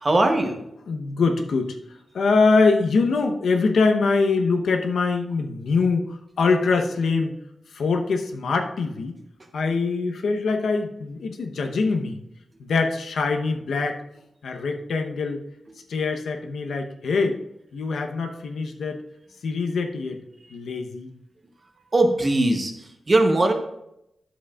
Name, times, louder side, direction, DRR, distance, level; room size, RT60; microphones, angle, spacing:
voice 1, 0.0-0.6 20.4-20.6 21.9-23.5, right 2 dB, 25° right, 4 dB, 0.9 m, -20 dB
voice 2, 0.9-1.8 2.1-7.3 7.7-9.1 9.5-12.2 12.6-14.0 14.4-15.4 15.9-17.4 17.7-19.0 19.4-20.2 20.5-21.1, left 4 dB, 80° left, 4 dB, 0.8 m, -23 dB
11.5 x 7.3 x 2.4 m, 0.81 s
wide cardioid pair, 175°, 0 cm